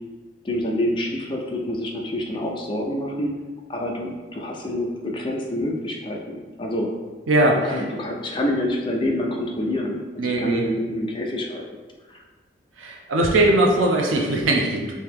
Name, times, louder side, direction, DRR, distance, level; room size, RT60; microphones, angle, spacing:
voice 1, 0.4-3.3 3.7-6.9 7.6-11.6 12.1-12.2, left 1 dB, 25° left, 0 dB, 0.4 m, -27 dB
voice 2, 7.3-7.9 10.2-10.6 12.8-14.9, right 1 dB, 85° right, 0 dB, 0.5 m, -20 dB
3.0 x 2.7 x 3.5 m, 1.3 s
head